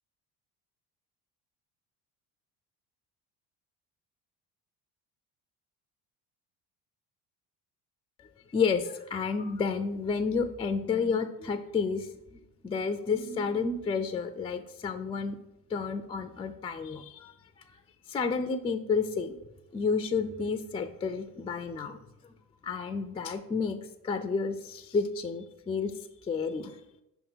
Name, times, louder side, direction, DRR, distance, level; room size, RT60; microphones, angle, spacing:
voice 1, 8.5-15.4 15.7-17.3 18.1-19.4 19.7-22.0 22.6-25.9 26.2-26.8, left 5 dB, 15° left, 9 dB, 0.3 m, -31 dB
5.6 x 3.6 x 5.4 m, 0.88 s
hypercardioid pair, 60°, 44 cm